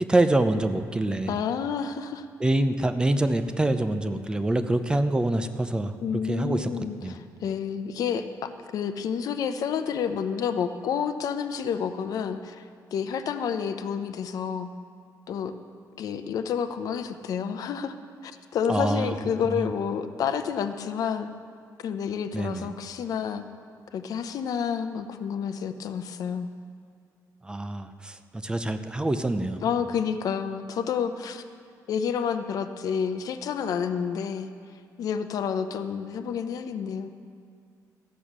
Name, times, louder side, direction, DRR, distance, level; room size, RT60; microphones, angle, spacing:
voice 1, 0.0-1.3 2.4-5.9 6.3-6.7 7.0-7.1 18.7-19.1 19.6-19.7 22.3-22.7 27.5-28.2 28.4-29.6, right 2 dB, 15° right, 9 dB, 0.5 m, -25 dB
voice 2, 1.3-2.3 6.0-14.7 15.3-15.5 16.0-18.0 18.2-21.3 21.8-23.4 23.9-26.5 29.6-31.4 31.9-34.5 35.0-37.1, left 7 dB, 65° left, 9 dB, 0.7 m, -29 dB
14.0 x 8.4 x 6.1 m, 2.2 s
cardioid pair, 135°, 7 cm